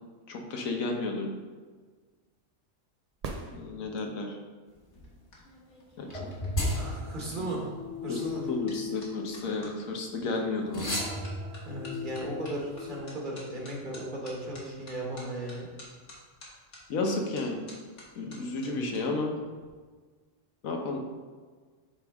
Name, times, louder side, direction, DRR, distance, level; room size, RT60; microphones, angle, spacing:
voice 1, 0.3-1.3 3.5-4.4 6.0-6.3 7.4-7.5 8.1-8.2 8.5-10.9 16.9-17.6 18.1-19.3 20.6-21.0, left 3 dB, 90° left, 2 dB, 1.3 m, -32 dB
sound 1, 3.1-4.3 8.2-8.3, right 4 dB, 65° right, 0.3 m, -40 dB
sound 2, 4.7-9.7 10.3-10.6 10.9-19.0 19.3-19.7, left 1 dB, 65° left, 1.7 m, -51 dB
sound 3, 6.1-9.9 10.7-13.0, left 2 dB, 25° left, 1.2 m, -35 dB
voice 2, 6.4-7.7 8.0-8.5 11.6-15.7 17.4-17.5 18.3-19.0, right 1 dB, 40° right, -3 dB, 1.3 m, -37 dB
8.9 x 3.5 x 3.5 m, 1.5 s
omnidirectional pair, 1.4 m